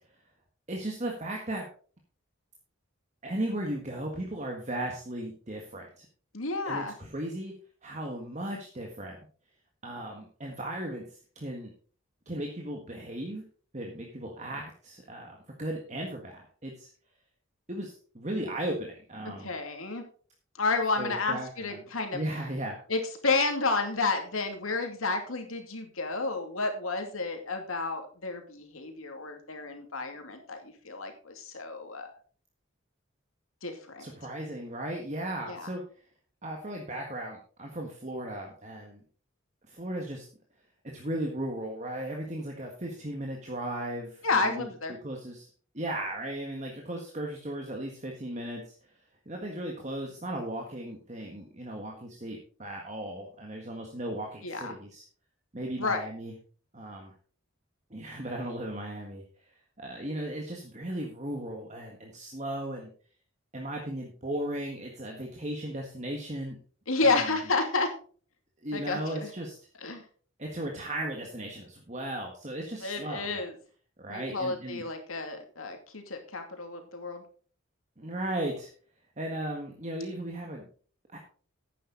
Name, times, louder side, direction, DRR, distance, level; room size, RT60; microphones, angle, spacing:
voice 1, 0.7-1.7 3.2-6.0 6.6-7.5 7.8-9.2 9.8-11.1 11.3-11.7 12.2-13.4 13.7-16.9 17.7-19.5 21.0-21.8 22.1-22.8 34.0-35.8 36.4-39.0 39.7-40.3 40.8-44.7 45.0-45.5 45.7-48.7 49.2-55.0 55.5-56.3 56.7-57.1 57.9-59.2 59.8-62.9 63.5-66.6 67.0-67.3 68.6-69.6 70.4-73.5 74.0-74.8 78.0-78.7 79.2-80.7 81.1-81.2, right 1 dB, 35° right, 1 dB, 1.7 m, -36 dB
voice 2, 6.3-6.9 19.4-20.0 20.6-22.2 22.9-32.1 33.6-34.0 35.5-35.7 44.2-44.9 54.4-54.8 55.8-56.1 66.9-67.9 68.7-69.3 69.8-70.0 72.8-73.5 74.1-77.2, left 3 dB, 85° left, 5 dB, 2.5 m, -31 dB
11.5 x 9.3 x 4.0 m, 0.42 s
head